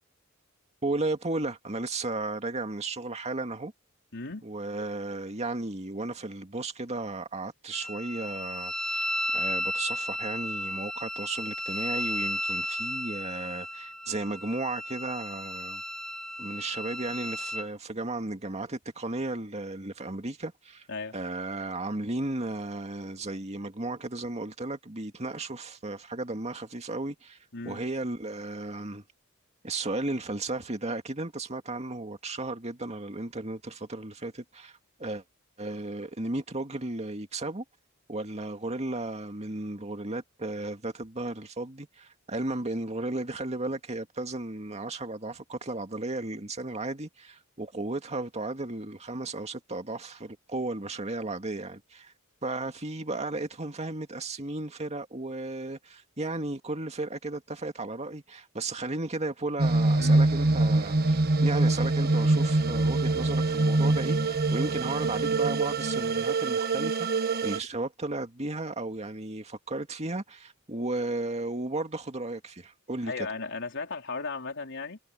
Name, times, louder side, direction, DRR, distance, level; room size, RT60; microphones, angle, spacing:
voice 1, 0.8-3.7 4.4-9.1 9.3-15.8 16.4-20.9 21.1-27.4 27.7-29.0 29.6-35.2 35.6-37.6 38.1-52.1 52.4-67.1 67.4-73.1, right 2 dB, 30° right, 2.2 m, -34 dB
voice 2, 4.1-4.4 20.9-21.2 27.5-27.8 60.0-60.3 73.0-75.0, left 4 dB, 60° left, 4.1 m, -36 dB
Wind instrument woodwind instrument, 7.7-17.7, left 1 dB, 5° left, 2.9 m, -34 dB
sound 1, 59.6-67.6, right 2 dB, 50° right, 1.3 m, -24 dB
head